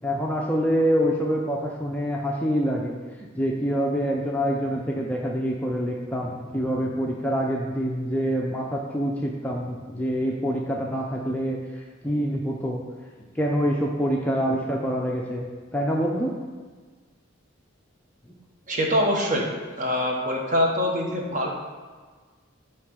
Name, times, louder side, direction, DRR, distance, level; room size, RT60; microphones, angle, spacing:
voice 1, 0.0-2.9 3.2-12.8 13.3-16.3 18.3-18.4, equal, 5° left, -2 dB, 0.5 m, -26 dB
voice 2, 18.7-19.5 19.8-21.6, equal, 40° right, -1 dB, 1.2 m, -24 dB
8.3 x 3.2 x 6.2 m, 1.5 s
head